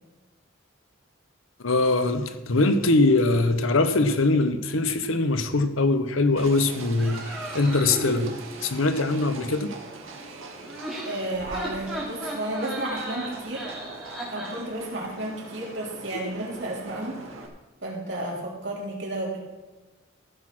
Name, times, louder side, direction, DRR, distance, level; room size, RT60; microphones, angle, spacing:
voice 1, 1.6-7.2 7.5-8.3 8.6-9.7, left 2 dB, 80° left, 9 dB, 0.9 m, -22 dB
Livestock farm animals working animals, 6.4-17.5, right 3 dB, 85° right, 2.0 m, -42 dB
sound 1, 7.0-8.3 10.6-14.6, right 1 dB, ahead, 2.8 m, -36 dB
voice 2, 11.0-13.7 14.3-17.2 17.8-19.4, right 1 dB, 60° right, -3 dB, 3.3 m, -32 dB
15.0 x 6.3 x 6.1 m, 1.2 s
head